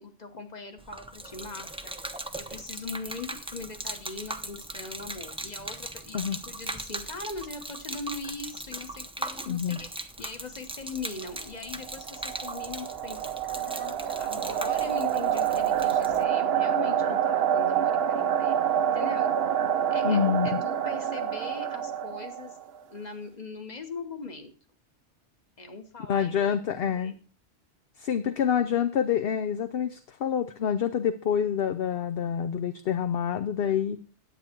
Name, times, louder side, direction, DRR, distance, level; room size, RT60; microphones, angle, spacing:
voice 1, 0.0-2.0 2.4-18.6 18.9-19.3 19.9-22.6 22.9-24.5 25.6-27.2, left 3 dB, 35° left, 6 dB, 1.4 m, -41 dB
Gurgling / Liquid, 0.8-16.2, right 1 dB, 5° right, 0.5 m, -39 dB
voice 2, 9.5-9.8 20.0-20.6 26.1-27.1 28.0-34.0, left 8 dB, 60° left, 9 dB, 0.8 m, -27 dB
sound 1, 11.8-22.7, right 9 dB, 65° right, 0.8 m, -27 dB
9.9 x 8.6 x 4.5 m, 0.38 s
omnidirectional pair, 1.2 m